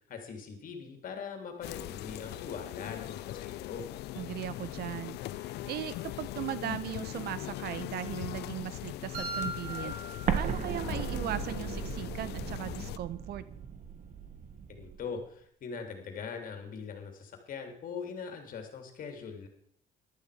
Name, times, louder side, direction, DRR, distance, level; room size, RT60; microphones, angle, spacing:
voice 1, 0.1-3.9 14.7-19.5, left 6 dB, 55° left, 5 dB, 3.0 m, -41 dB
sound 1, 1.6-13.0, left 15 dB, 75° left, 0.7 m, -40 dB
voice 2, 4.2-10.0 10.4-13.5, right 12 dB, 70° right, 15 dB, 1.0 m, -38 dB
sound 2, 9.1-11.2, right 2 dB, 85° right, 3.7 m, -39 dB
Explosion, 10.3-15.0, right 7 dB, 50° right, 1.7 m, -36 dB
14.5 x 12.0 x 5.0 m, 0.66 s
cardioid pair, 110°, 17 cm